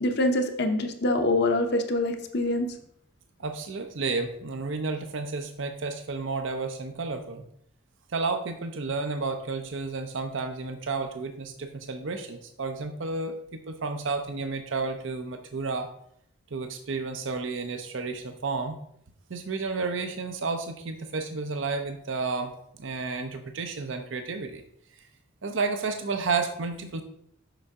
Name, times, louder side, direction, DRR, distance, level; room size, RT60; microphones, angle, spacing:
voice 1, 0.0-2.7, left 1 dB, 55° left, 5 dB, 0.8 m, -25 dB
voice 2, 3.4-7.4 8.1-13.4 13.7-15.9 16.5-18.8 19.3-22.5 22.8-24.6 25.4-27.0, right 4 dB, 65° right, 6 dB, 0.6 m, -31 dB
6.9 x 5.4 x 3.6 m, 0.70 s
head